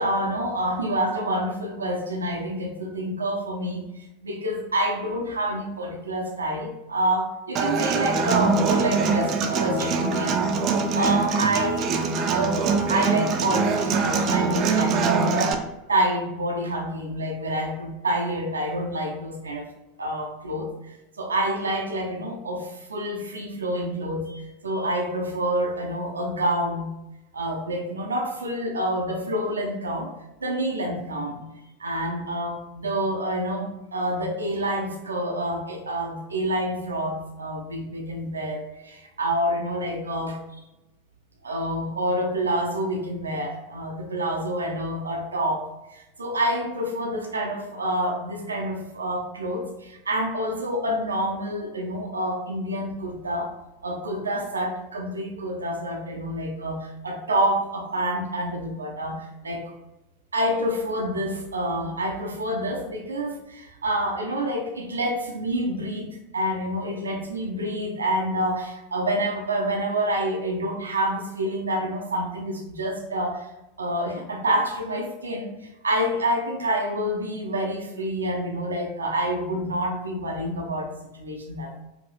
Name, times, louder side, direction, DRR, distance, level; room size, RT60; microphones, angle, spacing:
voice 1, 0.0-3.9 4.2-10.4 10.9-11.9 12.3-15.6 15.9-19.7 20.0-26.9 27.3-30.1 30.4-31.4 31.8-40.4 41.4-53.5 53.8-59.7 60.3-73.5 73.8-81.8, right 1 dB, 80° right, 2 dB, 0.6 m, -27 dB
Human voice / Acoustic guitar, 7.5-15.5, right 4 dB, 40° right, 0.5 m, -23 dB
4.9 x 2.7 x 3.2 m, 1.0 s
figure-of-eight pair, 85°, 0 cm